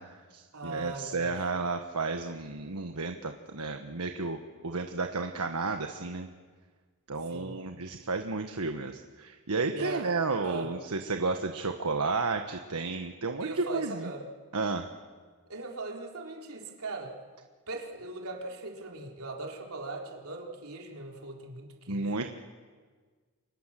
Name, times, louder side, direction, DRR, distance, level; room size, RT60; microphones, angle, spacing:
voice 1, 0.0-6.3 7.1-14.1 14.5-14.9 21.9-22.3, right 3 dB, 85° right, 5 dB, 1.4 m, -32 dB
voice 2, 0.5-1.3 7.3-7.6 9.7-10.2 10.4-10.7 13.4-14.3 15.5-17.2 17.7-22.3, right 3 dB, 70° right, 0 dB, 4.3 m, -40 dB
29.0 x 26.0 x 7.6 m, 1.5 s
head